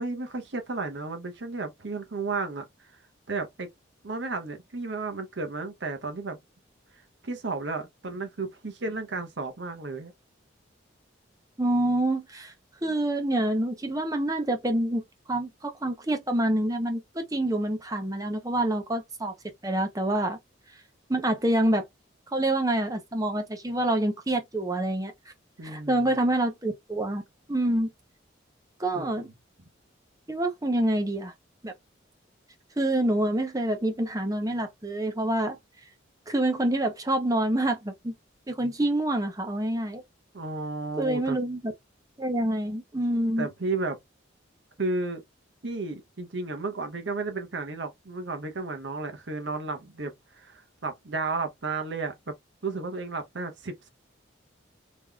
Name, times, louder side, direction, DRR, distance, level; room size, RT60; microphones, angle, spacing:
voice 1, 0.0-2.9 3.3-3.7 4.0-6.4 7.2-10.1 25.6-26.2 28.9-29.3 40.3-41.4 43.4-44.0 44.8-45.2 45.6-52.3 52.6-53.9, right 3 dB, 65° right, 0.9 m, -33 dB
voice 2, 11.6-12.5 12.8-15.0 15.3-19.3 19.6-20.4 21.1-21.9 22.3-25.1 25.6-27.2 27.5-27.9 28.8-29.3 30.3-31.3 31.6-31.7 32.8-35.6 36.3-38.1 38.5-40.0 41.0-41.6 42.2-43.5, right 1 dB, 20° right, 0.7 m, -26 dB
3.6 x 3.1 x 2.3 m
head